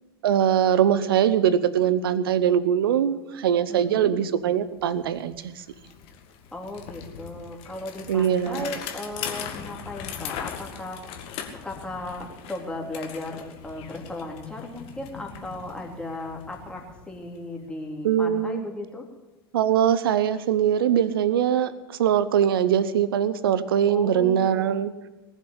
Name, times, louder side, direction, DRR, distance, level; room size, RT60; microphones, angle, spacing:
voice 1, 0.2-5.5 8.1-8.7 18.0-18.6 19.5-24.9, right 9 dB, 65° right, 15 dB, 1.0 m, -22 dB
voice 2, 3.7-4.2 6.5-11.4 11.6-19.1 23.9-24.8, left 2 dB, 5° left, 0 dB, 3.4 m, -36 dB
Bicycle, 4.4-4.5 4.8-17.7, left 8 dB, 45° left, 1.9 m, -40 dB
19.5 x 7.4 x 9.7 m, 1.1 s
figure-of-eight pair, 75°, 13 cm